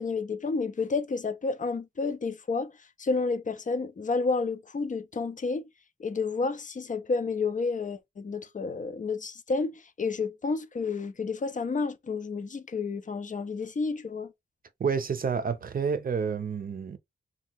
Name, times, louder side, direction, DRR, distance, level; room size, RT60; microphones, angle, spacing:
voice 1, 0.0-2.7 3.0-5.7 6.0-14.3, left 4 dB, 40° left, 0.5 m, -30 dB
voice 2, 14.8-17.0, right 6 dB, 45° right, 0.5 m, -29 dB
2.8 x 2.3 x 3.9 m
wide cardioid pair, 135°, 20 cm